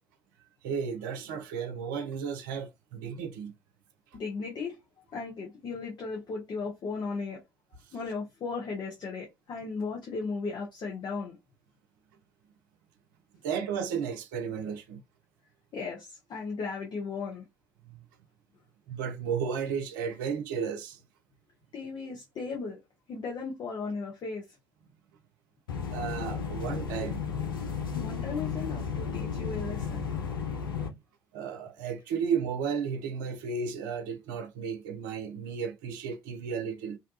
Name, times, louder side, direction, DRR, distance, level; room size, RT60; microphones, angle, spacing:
voice 1, 0.6-3.6 7.8-7.9 13.4-15.0 17.8-18.0 18.9-21.0 25.9-27.2 27.6-27.7 31.3-37.0, right 6 dB, 65° right, 0.5 m, -33 dB
voice 2, 4.1-4.8 5.1-7.4 7.9-11.4 15.7-17.4 21.7-22.8 23.1-24.4 28.0-30.1, left 4 dB, 40° left, 0.8 m, -36 dB
sound 1, 25.7-30.9, left 6 dB, 80° left, 0.5 m, -33 dB
2.6 x 2.2 x 2.5 m
figure-of-eight pair, 55°, 12 cm